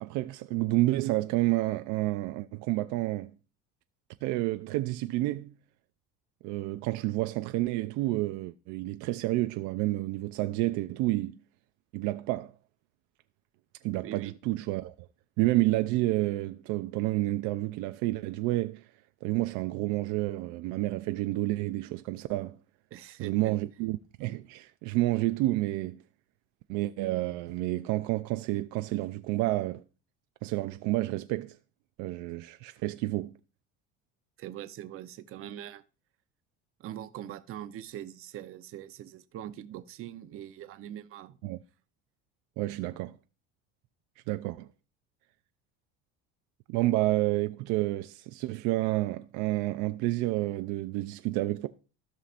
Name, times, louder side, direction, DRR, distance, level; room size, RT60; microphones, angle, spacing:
voice 1, 0.0-3.3 4.2-5.5 6.4-11.4 11.9-12.5 13.8-15.1 15.4-18.8 19.2-22.6 23.2-26.0 26.7-29.8 30.4-31.6 32.0-33.3 41.4-41.6 42.6-43.2 44.3-44.7 46.7-51.7, right 18 dB, 75° right, 0.5 m, -29 dB
voice 2, 22.9-23.6 34.4-35.8 36.8-41.4, right 11 dB, 45° right, 0.8 m, -42 dB
16.0 x 5.7 x 2.5 m
cardioid pair, 135°, 30 cm